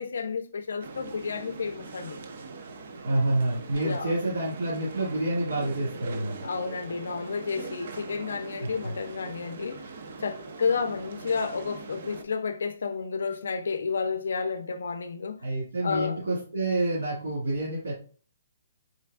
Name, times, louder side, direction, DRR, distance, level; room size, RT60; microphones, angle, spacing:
voice 1, 0.0-2.2 3.8-4.2 6.4-9.9 10.2-15.5 15.8-16.2, left 5 dB, 75° left, 0.5 m, -31 dB
sound 1, 0.8-12.2, right 4 dB, 50° right, 0.5 m, -41 dB
voice 2, 3.0-6.4 15.4-17.9, right 1 dB, 85° right, 1.9 m, -28 dB
4.4 x 3.4 x 2.4 m
hypercardioid pair, 170°, 0 cm